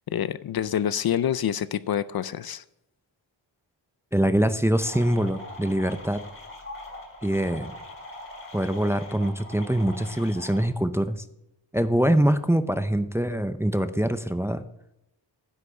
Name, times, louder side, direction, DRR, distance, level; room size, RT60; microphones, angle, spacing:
voice 1, 0.1-2.6, left 10 dB, 55° left, 16 dB, 0.5 m, -27 dB
voice 2, 4.1-6.2 7.2-7.7 8.5-11.2 11.7-14.6, right 1 dB, 5° right, 10 dB, 0.5 m, -24 dB
sound 1, 4.8-10.6, left 1 dB, 30° left, 2.9 m, -42 dB
10.5 x 8.2 x 4.3 m, 0.87 s
wide cardioid pair, 125°, 45 cm